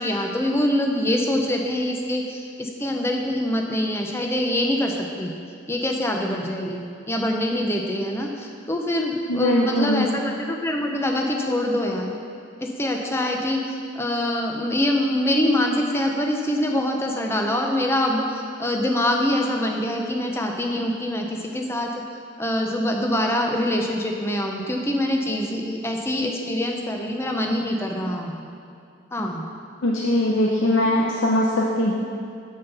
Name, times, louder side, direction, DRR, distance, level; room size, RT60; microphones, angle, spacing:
voice 1, 0.0-5.3 5.7-6.8 7.1-12.2 12.6-21.9 22.4-28.4 29.1-29.4, left 1 dB, 15° left, 1 dB, 0.7 m, -24 dB
voice 2, 9.3-10.1 29.8-31.9, left 1 dB, 80° left, -3 dB, 0.7 m, -21 dB
7.3 x 7.2 x 5.5 m, 2.4 s
head